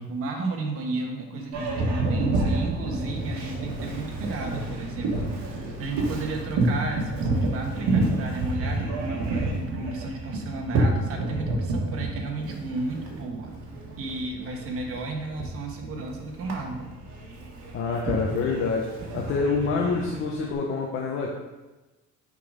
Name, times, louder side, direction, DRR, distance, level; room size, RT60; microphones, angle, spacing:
voice 1, 0.0-13.6 14.0-16.9, right 3 dB, 50° right, 3 dB, 1.1 m, -33 dB
Boat Water vehicle, 1.5-20.5, right 2 dB, 70° right, 1.4 m, -29 dB
voice 2, 17.7-21.3, left 4 dB, 45° left, 0 dB, 0.7 m, -27 dB
6.7 x 3.8 x 5.0 m, 1.1 s
cardioid pair, 175°, 29 cm